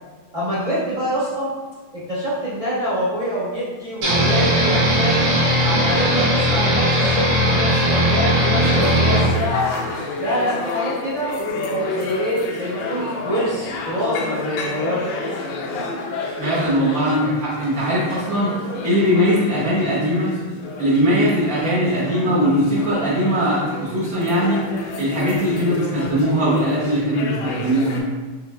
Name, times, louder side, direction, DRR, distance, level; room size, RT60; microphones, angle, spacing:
voice 1, 0.3-1.5 1.9-5.3 5.6-11.3 11.6-15.2, equal, 45° right, -10 dB, 0.4 m, -25 dB
sound 1, 4.0-9.3, equal, 85° right, 2.0 m, -18 dB
sound 2, 8.6-28.0, left 3 dB, 80° left, 1.5 m, -30 dB
voice 2, 16.4-18.6 18.8-20.3 20.8-24.6 25.0-28.0, equal, 60° right, -9 dB, 1.0 m, -20 dB
5.9 x 3.2 x 2.2 m, 1.3 s
omnidirectional pair, 2.4 m